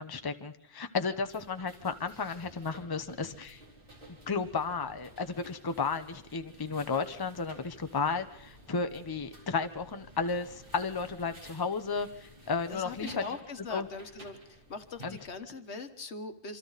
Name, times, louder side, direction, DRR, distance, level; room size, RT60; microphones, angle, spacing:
voice 1, 0.0-3.6 4.3-13.1 13.7-13.9 15.0-15.2, left 4 dB, 20° left, 9 dB, 0.9 m, -33 dB
sound 1, 0.9-15.4, equal, 50° right, 3.9 m, -54 dB
voice 2, 12.7-16.6, left 4 dB, 80° left, 8 dB, 1.7 m, -41 dB
27.5 x 24.5 x 4.1 m, 0.81 s
omnidirectional pair, 1.1 m